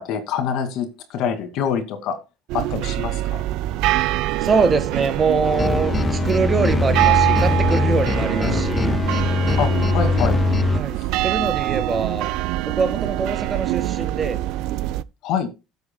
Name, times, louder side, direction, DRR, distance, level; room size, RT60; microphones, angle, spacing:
voice 1, 0.0-2.2 2.5-3.4 9.6-10.4 11.0-11.1 15.2-15.5, left 7 dB, 65° left, 2.4 m, -25 dB
sound 1, 2.5-15.0, right 16 dB, 70° right, 0.5 m, -24 dB
voice 2, 4.4-9.0 10.7-12.3 12.6-14.4, right 4 dB, 25° right, 1.5 m, -23 dB
sound 2, 5.4-10.8, left 4 dB, 20° left, 0.5 m, -21 dB
16.0 x 8.1 x 2.3 m
cardioid pair, 130°, 0 cm